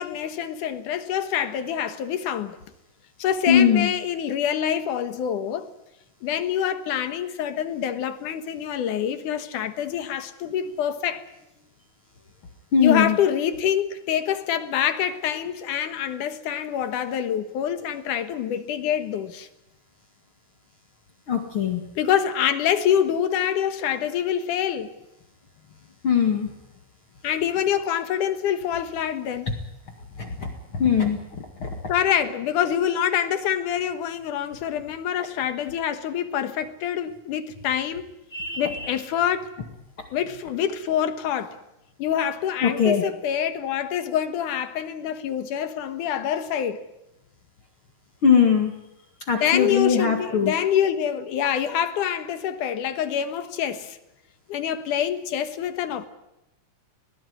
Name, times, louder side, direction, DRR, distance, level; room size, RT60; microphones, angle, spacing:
voice 1, 0.0-2.6 3.2-5.7 6.2-11.2 12.8-19.5 22.0-24.9 27.2-29.6 31.9-38.0 38.6-39.5 40.1-41.6 42.0-46.8 49.4-54.0 54.5-56.1, left 9 dB, 85° left, 2.8 m, -26 dB
voice 2, 3.5-3.9 12.7-13.2 21.3-21.8 26.0-26.5 30.2-31.8 38.3-38.9 42.6-43.0 48.2-48.7 49.3-50.5, left 7 dB, 45° left, 2.6 m, -21 dB
22.0 x 18.0 x 9.5 m
omnidirectional pair, 3.5 m